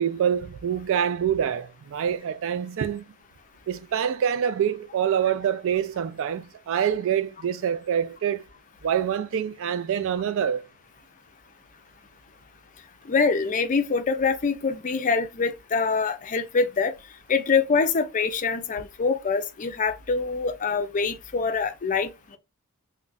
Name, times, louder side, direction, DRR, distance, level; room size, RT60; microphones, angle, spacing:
voice 1, 0.0-3.0 3.7-8.4 8.8-10.6, right 8 dB, 65° right, 0.3 m, -26 dB
voice 2, 13.0-16.9 17.3-22.4, left 4 dB, 35° left, 0.4 m, -25 dB
2.4 x 2.1 x 3.9 m
head